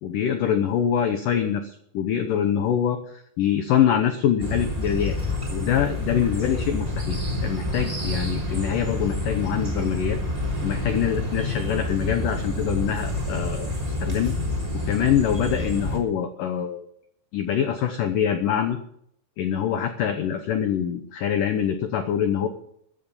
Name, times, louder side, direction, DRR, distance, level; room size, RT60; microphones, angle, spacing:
voice 1, 0.0-5.2 5.5-10.2 10.6-14.3 14.9-16.9 17.3-18.8 19.4-22.5, left 9 dB, 85° left, 7 dB, 1.8 m, -24 dB
sound 1, 4.4-16.0, left 1 dB, 10° right, 2.6 m, -28 dB
14.5 x 9.3 x 7.1 m, 0.69 s
omnidirectional pair, 5.3 m